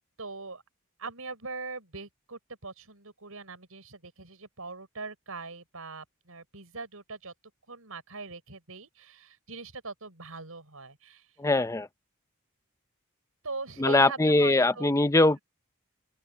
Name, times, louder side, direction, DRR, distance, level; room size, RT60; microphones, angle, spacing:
voice 1, 0.2-0.6 1.0-7.3 7.7-11.3 13.4-14.9, right 3 dB, 85° right, 5.7 m, -41 dB
voice 2, 11.4-11.9 13.8-15.4, left 2 dB, 15° left, 0.6 m, -22 dB
open air
head